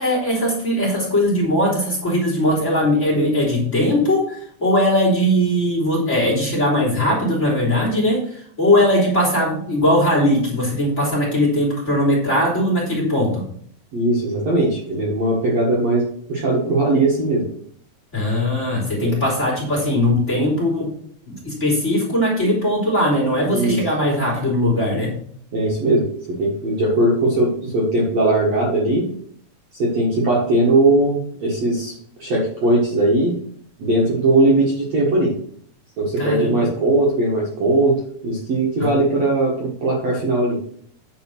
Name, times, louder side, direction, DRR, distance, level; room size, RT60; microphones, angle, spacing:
voice 1, 0.0-13.4 18.1-20.9 21.3-25.1 36.2-36.7 38.8-38.9, left 1 dB, 20° left, -2 dB, 3.2 m, -19 dB
voice 2, 13.9-16.0 16.3-17.5 19.0-19.2 23.5-23.8 25.5-26.1 26.4-29.1 29.8-33.3 33.8-35.3 36.0-38.0 38.2-40.6, right 2 dB, 50° right, -4 dB, 2.4 m, -19 dB
9.5 x 5.0 x 6.0 m, 0.63 s
omnidirectional pair, 4.7 m